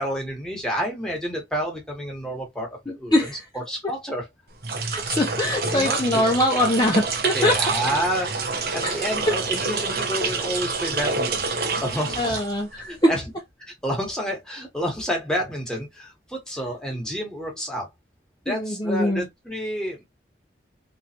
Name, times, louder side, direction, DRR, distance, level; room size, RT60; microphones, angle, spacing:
voice 1, 0.0-3.1 3.7-4.2 5.7-6.3 7.3-12.4 12.8-13.2 13.7-17.9 18.4-20.0, equal, 5° left, 1.4 m, -29 dB
voice 2, 2.9-3.4 4.9-7.6 8.8-9.3 12.2-13.1 18.5-19.3, left 1 dB, 25° left, 0.7 m, -23 dB
sound 1, 4.5-12.9, right 4 dB, 55° right, 0.9 m, -27 dB
3.7 x 3.1 x 2.8 m
head